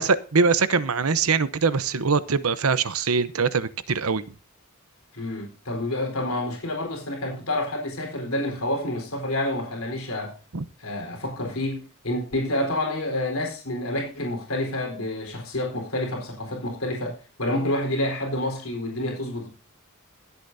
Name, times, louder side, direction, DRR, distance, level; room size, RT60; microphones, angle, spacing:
voice 1, 0.0-4.2 10.5-10.6, right 5 dB, 80° right, 0.9 m, -23 dB
voice 2, 5.1-10.3 10.8-19.5, left 1 dB, 70° left, 4.3 m, -28 dB
23.5 x 8.3 x 2.7 m
head